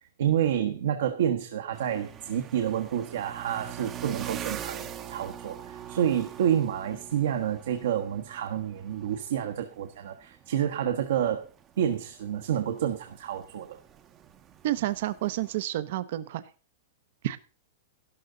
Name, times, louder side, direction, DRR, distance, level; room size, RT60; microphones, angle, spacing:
voice 1, 0.2-11.5 11.8-13.8, right 9 dB, 70° right, 5 dB, 1.3 m, -29 dB
sound 1, 1.7-15.6, right 10 dB, 20° right, 0.8 m, -43 dB
voice 2, 14.6-16.4 17.2-17.4, right 14 dB, 50° right, 14 dB, 0.8 m, -29 dB
12.5 x 12.0 x 3.9 m, 0.35 s
supercardioid pair, 170°, 0 cm